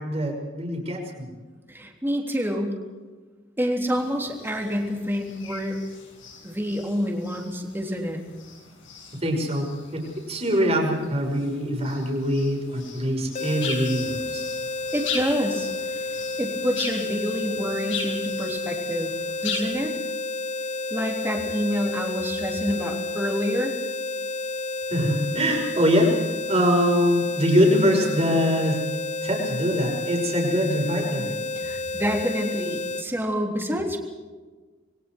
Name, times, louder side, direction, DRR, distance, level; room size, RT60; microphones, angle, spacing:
voice 1, 0.1-1.3 9.2-10.0 10.3-14.4 24.9-26.1 26.5-28.8 29.2-31.3, equal, 35° right, 1 dB, 5.8 m, -23 dB
voice 2, 1.7-2.8 3.6-5.8 6.4-8.2 14.9-19.1 19.4-20.0 20.9-23.7 31.6-34.0, equal, 10° right, 1 dB, 3.5 m, -27 dB
sound 1, 3.9-19.6, left 5 dB, 85° left, 7.6 m, -39 dB
sound 2, 13.3-33.1, left 2 dB, 40° left, 0.8 m, -31 dB
28.0 x 22.5 x 4.7 m, 1.3 s
head